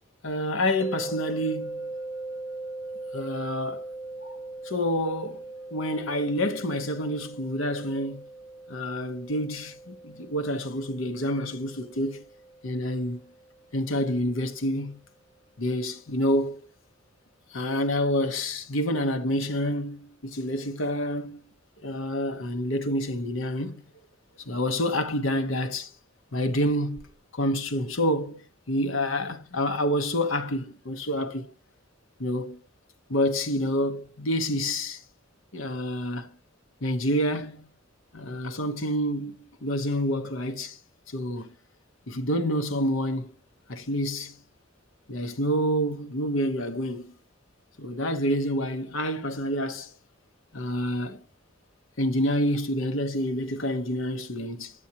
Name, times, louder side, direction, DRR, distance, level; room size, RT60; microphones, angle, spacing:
voice 1, 0.2-2.0 3.1-3.8 4.2-4.4 4.6-5.4 5.7-8.2 8.7-12.3 12.6-13.2 13.7-15.0 15.6-16.6 17.5-21.4 21.8-23.8 24.4-25.9 26.3-27.1 27.3-31.5 32.2-32.6 33.1-35.0 35.5-36.3 36.8-37.7 38.1-39.3 39.6-40.8 41.1-41.5 42.1-43.3 43.7-44.4 45.1-47.1 47.8-49.9 50.5-51.2 52.0-54.7, equal, 85° left, 1.1 m, -28 dB
sound 1, 0.8-13.9, right 2 dB, 15° right, 0.6 m, -40 dB
8.5 x 8.1 x 2.9 m
head